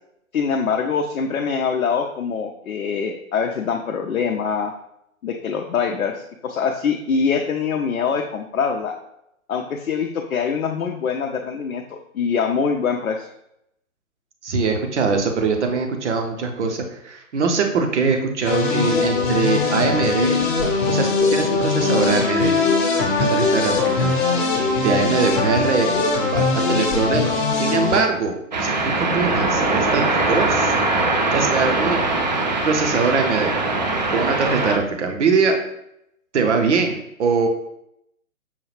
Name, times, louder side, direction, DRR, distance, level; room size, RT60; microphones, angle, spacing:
voice 1, 0.3-4.7 5.2-8.9 9.5-13.3, left 6 dB, 70° left, 2 dB, 0.6 m, -24 dB
voice 2, 14.4-20.5 20.9-22.6 23.0-24.1 24.8-28.3 28.6-30.7 31.3-32.0 32.6-33.6 34.1-35.6 36.3-37.5, right 4 dB, 55° right, 4 dB, 0.8 m, -22 dB
sound 1, 18.4-28.0, left 3 dB, 35° left, 0.9 m, -20 dB
sound 2, 28.5-34.8, right 2 dB, 35° right, 0.4 m, -21 dB
5.5 x 2.3 x 3.2 m, 0.79 s
figure-of-eight pair, 130°, 42 cm